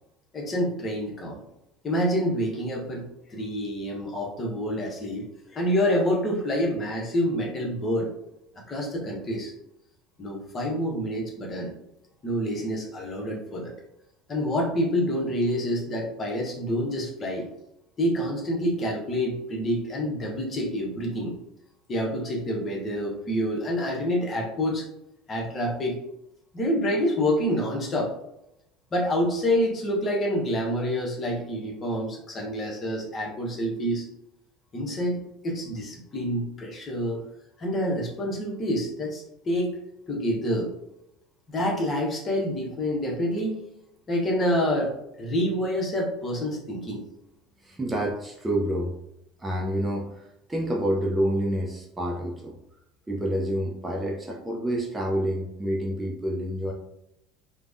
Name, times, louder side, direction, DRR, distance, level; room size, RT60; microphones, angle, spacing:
voice 1, 0.3-1.4 1.8-8.1 8.7-9.5 10.2-11.7 12.2-13.7 14.3-17.5 18.0-21.3 21.9-24.9 25.3-26.0 26.5-28.1 28.9-34.1 34.7-37.2 37.6-39.8 40.1-40.7 41.5-43.6 44.1-44.9 45.2-47.0, equal, 30° left, -1 dB, 0.9 m, -27 dB
voice 2, 47.6-48.9 49.4-52.5 53.1-56.7, right 1 dB, 15° right, -2 dB, 0.5 m, -28 dB
3.3 x 2.1 x 2.5 m, 0.83 s
figure-of-eight pair, 65°, 0 cm